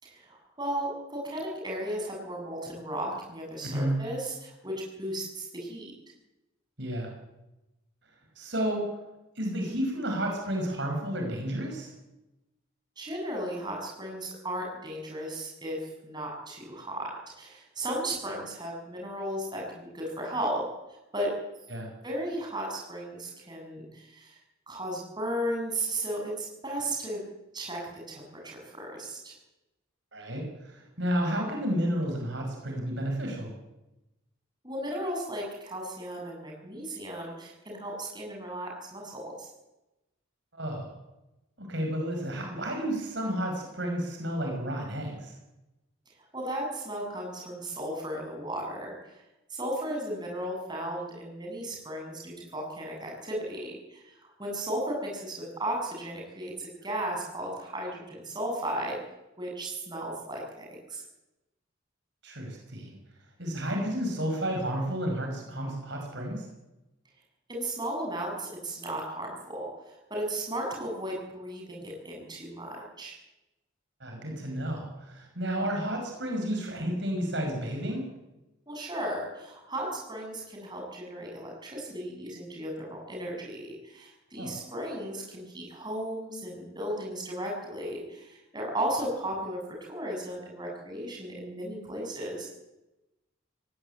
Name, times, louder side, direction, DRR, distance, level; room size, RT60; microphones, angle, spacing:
voice 1, 0.0-5.9 13.0-17.1 17.4-20.6 20.9-21.3 22.0-24.4 24.7-27.2 27.5-27.8 28.1-29.3 34.6-39.5 46.3-48.9 49.5-58.9 59.4-61.0 67.5-73.2 78.7-92.5, right 1 dB, 20° right, -1 dB, 7.5 m, -35 dB
voice 2, 3.6-4.0 6.8-7.1 8.4-8.8 9.4-11.9 21.7-21.9 30.1-33.5 40.5-40.9 41.6-45.3 62.2-63.0 63.4-66.5 74.0-78.1 84.4-84.6, equal, 55° right, 2 dB, 5.6 m, -31 dB
19.5 x 17.5 x 8.9 m, 0.98 s
head